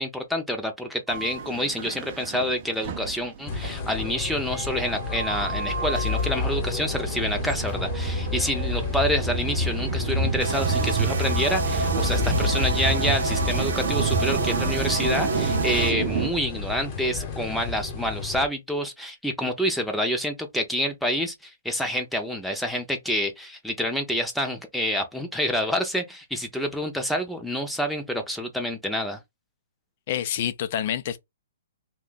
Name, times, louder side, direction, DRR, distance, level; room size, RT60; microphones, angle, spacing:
voice 1, 0.0-29.2, equal, ahead, 0.6 m, -28 dB
sound 1, 1.1-16.3, right 4 dB, 40° right, 0.5 m, -29 dB
sound 2, 3.5-18.5, left 5 dB, 30° left, 1.0 m, -31 dB
sound 3, 10.4-15.9, right 3 dB, 75° right, 0.9 m, -29 dB
voice 2, 30.1-31.2, left 10 dB, 45° left, 0.4 m, -27 dB
2.7 x 2.3 x 3.9 m
hypercardioid pair, 145°, 0 cm